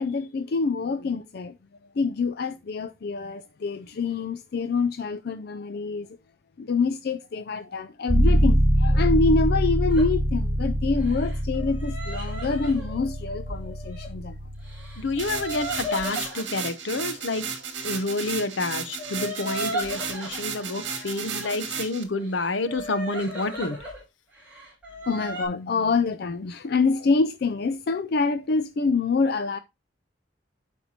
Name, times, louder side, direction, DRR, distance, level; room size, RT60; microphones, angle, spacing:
voice 1, 0.0-1.6 2.0-6.1 6.6-14.4 25.1-29.6, left 4 dB, 55° left, 0.4 m, -26 dB
sound 1, 8.1-15.8, equal, 50° right, 3.2 m, -24 dB
sound 2, 9.9-10.1 11.0-14.1 14.6-16.5 18.5-21.6 22.1-24.0 24.3-25.5, equal, 10° right, 4.1 m, -36 dB
voice 2, 15.0-17.5 17.8-23.8, left 2 dB, 80° left, 0.8 m, -29 dB
sound 3, 15.2-22.0, right 6 dB, 70° right, 1.6 m, -34 dB
12.0 x 4.5 x 2.8 m
head